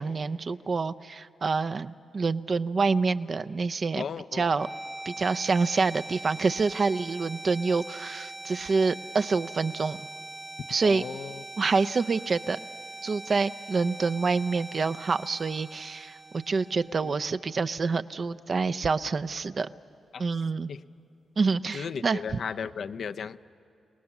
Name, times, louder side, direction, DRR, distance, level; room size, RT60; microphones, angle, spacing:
voice 1, 0.0-4.0 4.3-4.7 5.1-10.0 10.7-11.0 11.6-12.6 13.0-19.7 20.2-20.7 21.4-22.4, right 4 dB, 50° right, 11 dB, 0.6 m, -27 dB
voice 2, 4.0-4.5 10.8-11.4 17.0-17.1 20.1-20.2 20.7-20.8 21.7-23.4, left 6 dB, 65° left, 10 dB, 0.5 m, -35 dB
sound 1, 4.4-18.4, right 2 dB, 20° right, 1.1 m, -42 dB
29.5 x 19.0 x 7.2 m, 2.6 s
supercardioid pair, 45°, 0 cm